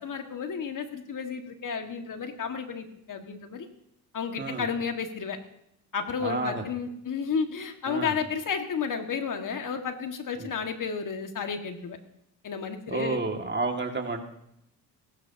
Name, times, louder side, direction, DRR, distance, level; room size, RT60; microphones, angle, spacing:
voice 1, 0.0-3.7 4.1-5.4 5.9-12.0 12.4-13.2, left 6 dB, 50° left, 5 dB, 1.9 m, -32 dB
voice 2, 6.2-6.6 7.9-8.1 10.4-10.5 12.9-14.2, right 3 dB, 25° right, 3 dB, 2.2 m, -30 dB
21.5 x 13.0 x 2.9 m, 0.77 s
supercardioid pair, 70°, 40 cm